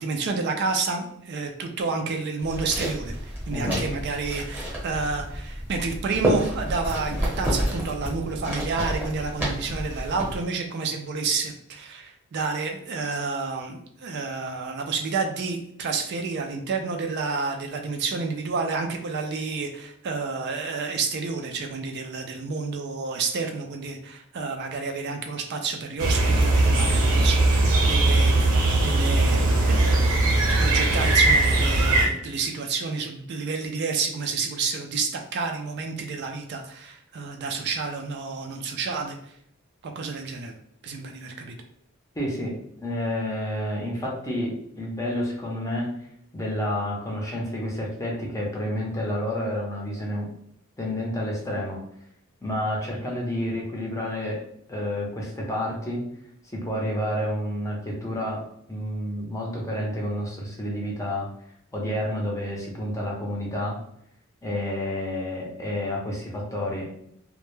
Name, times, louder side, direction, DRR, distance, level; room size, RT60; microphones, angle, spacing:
voice 1, 0.0-30.0 30.6-39.3 39.8-40.5 40.8-41.6, right 4 dB, 50° right, 4 dB, 0.3 m, -30 dB
sound 1, 2.4-10.4, equal, 10° right, 0.9 m, -30 dB
sound 2, 26.0-32.1, right 2 dB, 85° right, 0.7 m, -20 dB
voice 2, 42.2-46.0 46.3-50.3 50.8-51.8 52.4-54.4 54.7-56.1 56.5-61.3 61.7-63.8 64.4-66.9, left 1 dB, 15° left, -2 dB, 0.6 m, -29 dB
2.1 x 2.1 x 3.0 m, 0.71 s
head